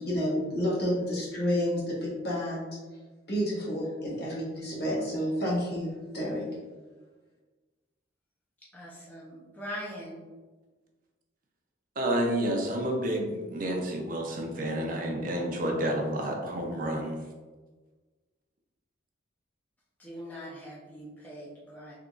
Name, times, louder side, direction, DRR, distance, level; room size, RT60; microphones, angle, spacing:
voice 1, 0.0-2.7 3.3-6.4, equal, 55° left, -5 dB, 1.2 m, -30 dB
voice 2, 8.7-10.2 20.0-21.9, equal, 10° left, -7 dB, 0.5 m, -42 dB
voice 3, 12.0-17.2, right 1 dB, 45° right, 1 dB, 0.5 m, -30 dB
3.6 x 2.9 x 2.4 m, 1.3 s
head